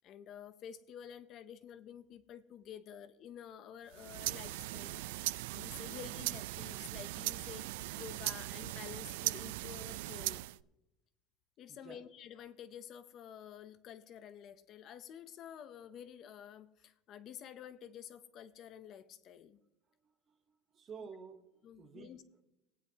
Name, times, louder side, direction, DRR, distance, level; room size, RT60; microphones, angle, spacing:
voice 1, 0.0-5.0 5.5-7.7 7.9-10.4 11.6-19.6 21.0-21.1 21.6-22.2, left 9 dB, 35° left, 12 dB, 0.6 m, -50 dB
sound 1, 3.9-10.6, right 18 dB, 80° right, 0.3 m, -39 dB
voice 2, 11.7-12.0 20.0-21.5 21.8-22.4, right 5 dB, 25° right, 8 dB, 0.9 m, -52 dB
19.0 x 9.7 x 2.8 m, 0.94 s
cardioid pair, 175°, 0 cm